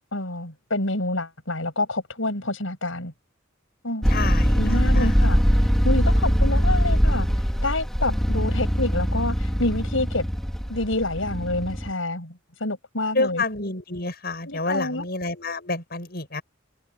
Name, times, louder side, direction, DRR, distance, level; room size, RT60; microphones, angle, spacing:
voice 1, 0.1-3.1 3.8-4.1 4.5-5.4 5.8-7.3 7.6-10.3 10.7-13.4 14.5-15.1, left 2 dB, 80° left, 7.1 m, -28 dB
sound 1, 4.0-11.9, equal, ahead, 4.1 m, -22 dB
voice 2, 4.1-4.6 4.9-5.1 13.1-16.4, left 3 dB, 50° left, 7.5 m, -28 dB
head